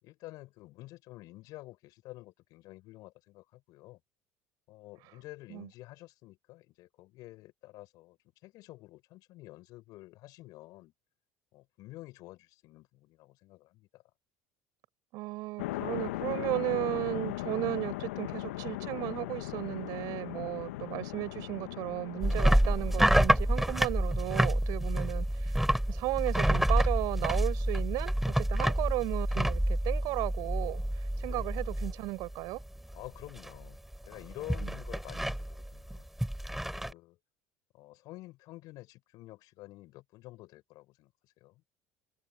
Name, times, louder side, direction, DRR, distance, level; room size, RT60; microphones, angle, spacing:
voice 1, 0.0-4.0 4.7-8.2 8.4-10.9 11.5-14.0 20.6-21.1 31.3-31.5 32.9-33.8 34.0-36.1 36.8-37.2 37.7-41.1 41.4-41.6, left 18 dB, 65° left, 6.9 m, -49 dB
voice 2, 15.1-25.5 25.9-30.8 31.2-32.6 34.6-34.7, right 21 dB, 65° right, 5.8 m, -35 dB
sound 1, 15.6-24.6, left 18 dB, 80° left, 1.4 m, -39 dB
sound 2, 22.2-32.3 32.6-33.1 33.4-36.9, right 1 dB, 5° right, 5.0 m, -28 dB
hypercardioid pair, 75°, 7 cm